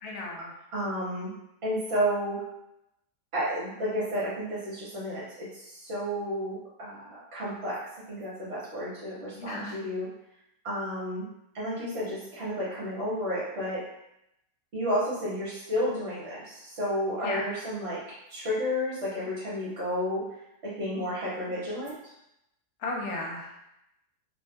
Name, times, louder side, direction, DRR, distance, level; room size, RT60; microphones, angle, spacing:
voice 1, 0.0-0.5 9.3-9.8 17.2-17.4 22.8-23.5, left 2 dB, 75° left, -1 dB, 1.2 m, -34 dB
voice 2, 0.7-1.3 1.6-2.4 3.3-7.8 8.1-10.1 10.6-11.2 11.5-13.9 14.7-18.0 18.3-20.2 20.6-21.9, equal, 50° right, -8 dB, 0.9 m, -31 dB
2.6 x 2.2 x 3.4 m, 0.84 s
omnidirectional pair, 1.7 m